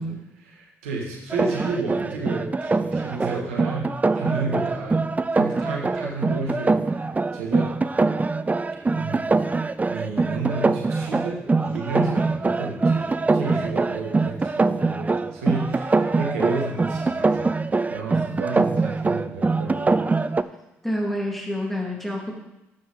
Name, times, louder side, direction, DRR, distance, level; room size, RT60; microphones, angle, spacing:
voice 1, 0.4-7.7 8.9-19.9, right 3 dB, 85° right, -1 dB, 1.8 m, -32 dB
sound 1, 1.3-20.4, right 3 dB, 20° right, 0.5 m, -23 dB
voice 2, 20.8-22.3, equal, 5° left, -2 dB, 3.4 m, -28 dB
14.0 x 6.4 x 3.8 m, 0.95 s
hypercardioid pair, 50°, 7 cm